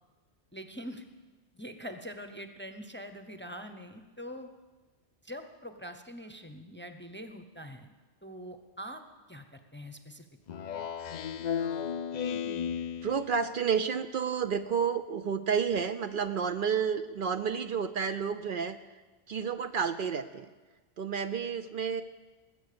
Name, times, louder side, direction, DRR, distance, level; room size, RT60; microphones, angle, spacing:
voice 1, 0.5-1.0 1.5-4.5 5.2-7.9 8.2-9.0 9.3-10.3, equal, 10° left, 7 dB, 0.7 m, -43 dB
Speech synthesizer, 10.5-13.5, left 7 dB, 55° left, 0.5 m, -34 dB
voice 2, 13.0-18.8 19.3-20.5 21.0-22.0, right 6 dB, 60° right, 10 dB, 0.7 m, -30 dB
19.5 x 8.0 x 6.8 m, 1.3 s
omnidirectional pair, 1.1 m